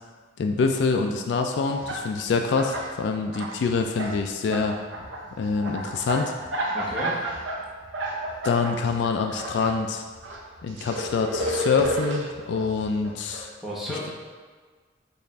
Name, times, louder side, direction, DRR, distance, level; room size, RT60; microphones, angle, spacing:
voice 1, 0.4-4.7 5.4-6.3 8.4-10.0 10.6-13.5, left 4 dB, 65° left, 4 dB, 0.3 m, -25 dB
sound 1, 1.3-1.4 1.7-2.9 3.2-4.2 4.5-9.8 10.1-13.4, right 1 dB, 85° right, 0.7 m, -32 dB
voice 2, 6.7-7.2 13.6-14.1, equal, ahead, -6 dB, 0.9 m, -32 dB
5.3 x 2.5 x 4.0 m, 1.5 s
head